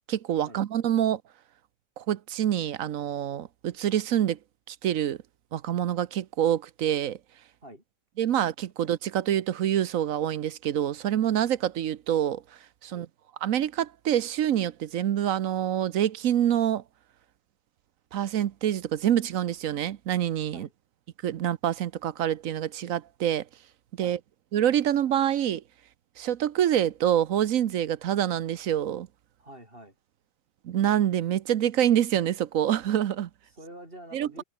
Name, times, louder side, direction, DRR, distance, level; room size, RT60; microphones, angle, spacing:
voice 1, 0.1-1.2 2.0-4.4 4.7-5.2 5.5-7.2 8.2-12.4 12.8-13.1 13.4-16.8 18.1-20.7 21.2-23.4 24.0-24.2 24.5-25.6 26.2-29.1 30.6-33.3 34.1-34.4, right 10 dB, 70° right, 1.2 m, -26 dB
voice 2, 29.4-29.9 33.5-34.4, right 1 dB, 40° right, 7.9 m, -46 dB
omnidirectional pair, 1.5 m